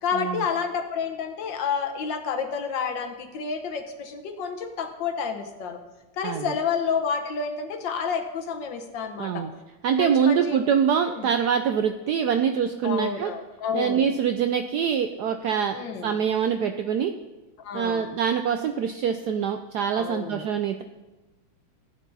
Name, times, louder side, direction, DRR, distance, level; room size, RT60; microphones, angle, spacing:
voice 1, 0.0-5.8 6.2-9.4 10.0-10.6 11.1-11.3 12.8-14.1 15.7-16.1 17.6-18.1 19.9-20.4, left 6 dB, 65° left, 6 dB, 1.6 m, -29 dB
voice 2, 6.2-6.5 9.2-9.5 9.8-13.3 13.7-15.8 16.0-17.1 17.7-20.8, right 7 dB, 75° right, 7 dB, 0.9 m, -24 dB
16.0 x 8.3 x 4.0 m, 1.1 s
omnidirectional pair, 2.3 m